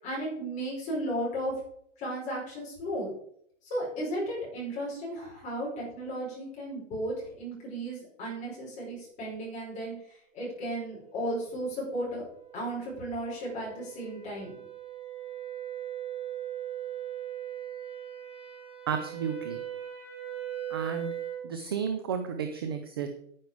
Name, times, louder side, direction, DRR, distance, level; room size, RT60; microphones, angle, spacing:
voice 1, 0.0-1.5 2.0-3.1 3.7-9.9 10.3-12.3 12.5-14.5, right 1 dB, 20° left, -4 dB, 5.3 m, -34 dB
sound 1, 11.6-21.5, right 11 dB, 5° right, 4.9 m, -40 dB
voice 2, 18.9-19.6 20.7-21.1 21.4-23.1, right 7 dB, 20° right, 7 dB, 0.4 m, -32 dB
9.6 x 9.4 x 4.9 m, 0.69 s
hypercardioid pair, 160°, 38 cm